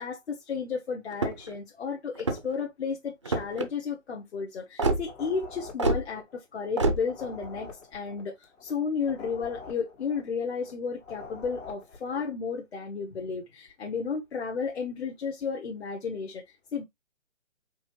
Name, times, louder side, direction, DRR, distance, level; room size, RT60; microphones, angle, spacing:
voice 1, 0.0-16.8, left 5 dB, 55° left, 1.1 m, -33 dB
sound 1, 1.1-1.6 2.1-2.6 3.2-3.7 4.8-5.0 5.8-6.0 6.8-7.0, right 2 dB, 25° right, 0.4 m, -26 dB
sound 2, 5.0-6.7 7.0-10.7 11.0-12.3, left 4 dB, 75° left, 1.7 m, -46 dB
5.3 x 3.1 x 3.1 m
figure-of-eight pair, 145°, 39 cm